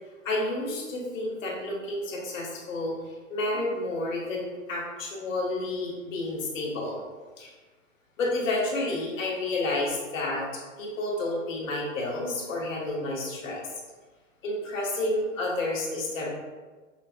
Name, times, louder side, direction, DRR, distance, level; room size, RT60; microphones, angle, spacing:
voice 1, 0.2-2.9 3.3-7.0 7.4-7.5 8.2-10.4 10.8-13.6 14.4-16.3, left 2 dB, 70° left, -2 dB, 1.2 m, -30 dB
5.5 x 2.2 x 2.5 m, 1.3 s
hypercardioid pair, 125°, 41 cm